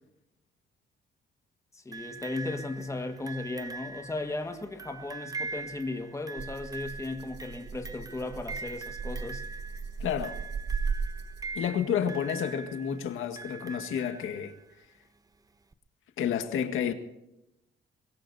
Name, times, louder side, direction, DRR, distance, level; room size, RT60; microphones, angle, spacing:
voice 1, 1.7-9.4, left 2 dB, 15° left, 1.8 m, -36 dB
sound 1, 1.9-14.7 15.7-15.8, right 4 dB, 20° right, 0.9 m, -42 dB
Rattle (instrument), 6.4-11.7, right 5 dB, 55° right, 2.6 m, -36 dB
voice 2, 10.0-10.4 11.5-14.5 16.2-16.9, left 8 dB, 90° left, 1.9 m, -30 dB
23.5 x 21.5 x 2.8 m
cardioid pair, 130°, 20 cm